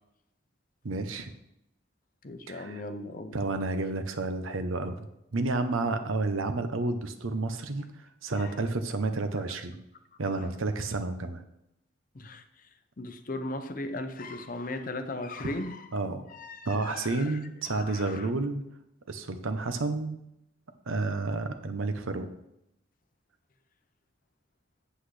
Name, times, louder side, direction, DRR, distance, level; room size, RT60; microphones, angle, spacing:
voice 1, 0.8-1.3 2.5-2.8 3.3-5.1 5.3-7.8 8.2-9.7 10.2-11.4 15.9-16.2 16.7-18.6 19.1-20.2 20.9-22.3, right 3 dB, 90° right, 0.8 m, -30 dB
voice 2, 2.2-3.4 8.4-8.6 10.3-10.4 12.1-12.7 13.0-15.9 16.3-18.3, left 2 dB, 45° left, 0.6 m, -38 dB
8.2 x 7.7 x 3.3 m
head